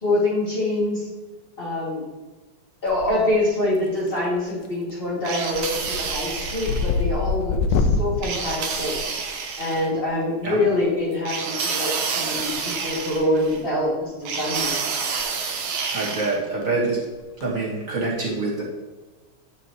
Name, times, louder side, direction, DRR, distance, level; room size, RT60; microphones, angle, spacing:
voice 1, 0.0-1.1 1.6-2.0 2.8-8.9 9.6-15.0, left 1 dB, 20° left, -6 dB, 2.0 m, -25 dB
sound 1, 2.9-3.4 3.8-4.3 4.6-4.9 5.2-9.7 11.0-11.2 12.4-13.2 13.5-13.7 14.2-14.3 14.6-14.7 15.0-15.2 15.5-15.6 17.2-17.4, left 4 dB, 75° left, 1.7 m, -26 dB
sound 2, 5.2-7.0 8.2-9.9 11.2-13.6 14.2-16.4, right 5 dB, 70° right, 1.5 m, -28 dB
voice 2, 15.9-17.0 17.4-18.6, right 3 dB, 45° right, -5 dB, 1.1 m, -25 dB
9.4 x 6.1 x 3.0 m, 1.2 s
omnidirectional pair, 3.4 m